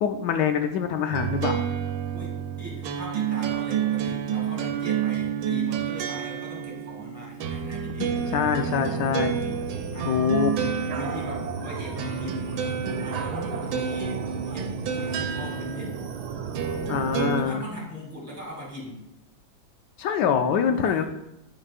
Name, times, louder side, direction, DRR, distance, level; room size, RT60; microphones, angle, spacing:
voice 1, 0.0-1.6 8.0-9.4 10.0-10.5 16.9-17.6 20.0-21.0, left 7 dB, 75° left, 6 dB, 1.1 m, -24 dB
sound 1, 1.1-17.4, right 7 dB, 90° right, 1.4 m, -30 dB
voice 2, 2.1-8.3 9.9-10.1 10.9-15.9 17.4-19.0 20.7-21.0, left 1 dB, 10° right, -4 dB, 2.4 m, -40 dB
sound 2, 8.0-17.5, right 6 dB, 70° right, 1.1 m, -35 dB
11.0 x 4.7 x 2.4 m, 0.86 s
omnidirectional pair, 2.1 m